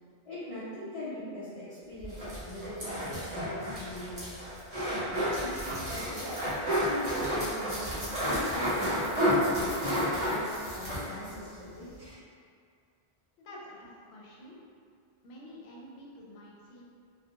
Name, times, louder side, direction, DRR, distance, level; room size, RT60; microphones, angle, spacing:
voice 1, 0.3-4.4 5.1-6.4 6.7-8.8 9.3-12.0, left 1 dB, 55° left, -10 dB, 0.4 m, -41 dB
sound 1, 2.0-11.4 11.7-11.8 12.0-12.1, equal, 40° right, 0.8 m, -31 dB
voice 2, 13.4-14.6 15.2-16.8, equal, 80° left, -4 dB, 0.8 m, -49 dB
2.3 x 2.1 x 2.7 m, 2.3 s
omnidirectional pair, 1.1 m